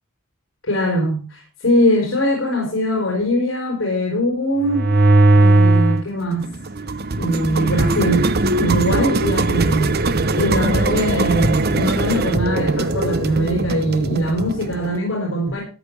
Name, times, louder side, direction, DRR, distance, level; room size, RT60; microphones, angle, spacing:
voice 1, 0.6-4.9 5.3-6.5 7.2-8.3 8.6-10.0 10.3-15.6, equal, 70° left, -1 dB, 4.5 m, -21 dB
sound 1, 4.6-6.1 6.4-15.0, right 2 dB, 50° right, 0.9 m, -19 dB
14.0 x 8.9 x 4.7 m, 0.34 s
head